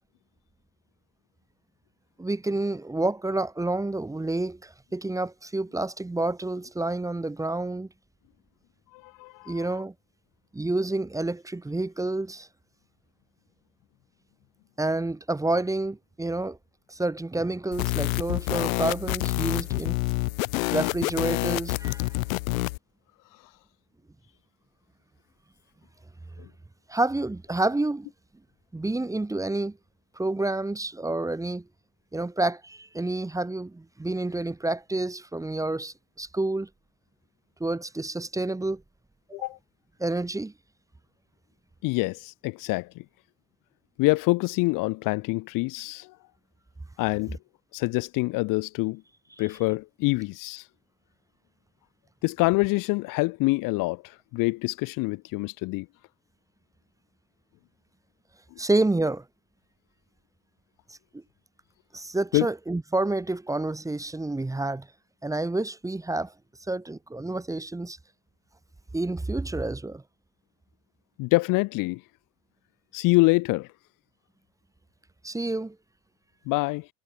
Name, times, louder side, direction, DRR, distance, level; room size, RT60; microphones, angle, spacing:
voice 1, 2.2-7.9 9.5-9.9 10.5-12.5 14.8-16.6 16.9-20.0 20.7-22.2 26.9-28.1 28.7-29.8 30.2-31.6 32.1-36.7 37.6-38.8 39.3-39.5 40.0-40.5 58.6-59.2 61.1-61.2 61.9-64.9 65.2-66.3 66.7-68.0 68.9-70.0 75.2-75.8, right 2 dB, 10° right, 1.1 m, -29 dB
voice 2, 8.9-9.6 26.4-26.5 39.3-39.6 41.8-43.0 44.0-46.1 47.0-47.4 47.7-49.0 49.4-50.6 52.2-55.9 62.3-62.5 71.2-72.0 72.9-73.7 76.5-76.9, left 24 dB, 50° left, 0.7 m, -26 dB
sound 1, 17.7-22.8, left 22 dB, 75° left, 1.0 m, -27 dB
hypercardioid pair, 90°, 41 cm